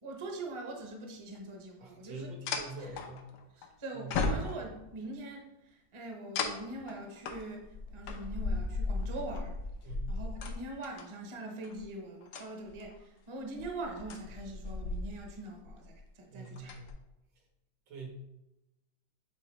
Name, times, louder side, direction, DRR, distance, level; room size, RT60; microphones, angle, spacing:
voice 1, 0.0-2.3 2.8-2.9 3.6-9.6 9.8-16.8, right 2 dB, 30° right, 1 dB, 0.6 m, -43 dB
sound 1, 1.4-1.5 2.5-3.7 4.1-4.9 6.3-11.1 11.6-11.8 12.2-13.0 13.6-15.4 15.6-16.0 16.4-16.9, left 3 dB, 85° left, 1.4 m, -36 dB
voice 2, 1.8-3.3 3.9-4.2 9.8-10.2 16.2-16.9 17.9-18.1, right 3 dB, 75° right, 1 dB, 1.9 m, -45 dB
7.7 x 3.9 x 3.2 m, 0.95 s
omnidirectional pair, 1.9 m